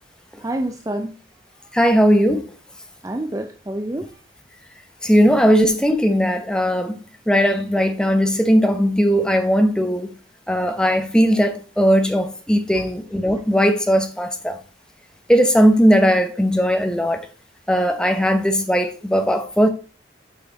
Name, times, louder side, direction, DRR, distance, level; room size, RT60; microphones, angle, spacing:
voice 1, 0.4-1.2 3.0-4.1 5.2-5.3 12.7-12.9, right 1 dB, 20° right, 0.5 m, -28 dB
voice 2, 1.7-2.4 5.0-7.0 7.3-10.1 10.5-14.6 15.3-17.2 17.7-19.7, equal, 5° left, 0.8 m, -18 dB
8.0 x 5.7 x 4.0 m
head